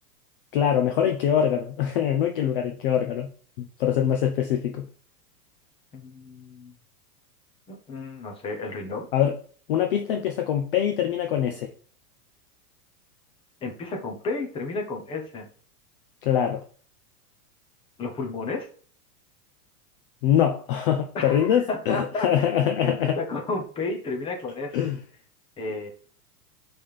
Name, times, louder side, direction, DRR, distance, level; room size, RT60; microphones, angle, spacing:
voice 1, 0.5-3.3 3.6-4.8 9.1-9.4 9.7-11.7 16.2-16.6 20.2-23.2 24.7-25.0, left 9 dB, 35° left, 0.5 m, -23 dB
voice 2, 5.9-6.7 7.7-9.1 13.6-15.5 18.0-18.7 21.1-22.5 22.8-24.7 25.6-25.9, left 3 dB, 10° left, 0.9 m, -32 dB
5.2 x 3.5 x 5.6 m
supercardioid pair, 165°, 47 cm